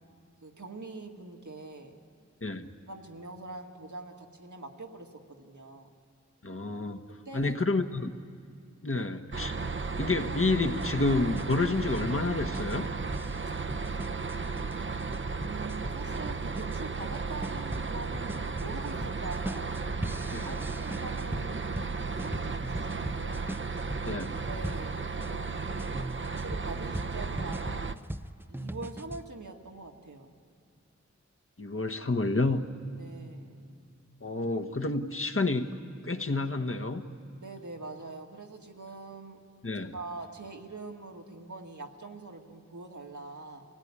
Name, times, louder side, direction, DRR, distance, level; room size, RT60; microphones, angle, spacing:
voice 1, 0.4-1.9 2.9-5.9 7.1-7.6 8.9-9.2 15.4-19.8 20.5-21.9 22.2-23.5 24.5-27.8 28.5-30.3 33.0-33.7 37.4-39.4 39.8-43.6, right 3 dB, 80° right, 2 dB, 2.1 m, -44 dB
voice 2, 6.4-7.0 7.3-8.1 8.8-9.5 10.0-12.9 20.3-20.5 24.0-24.3 31.6-32.7 34.2-35.7 36.0-37.0 39.6-39.9, left 3 dB, 45° left, 4 dB, 1.4 m, -29 dB
sound 1, 9.3-28.0, right 4 dB, 40° right, 0.8 m, -34 dB
sound 2, 10.8-25.3 25.8-29.3, right 1 dB, 5° right, 0.5 m, -40 dB
25.5 x 17.0 x 9.8 m, 2.3 s
wide cardioid pair, 45°, 29 cm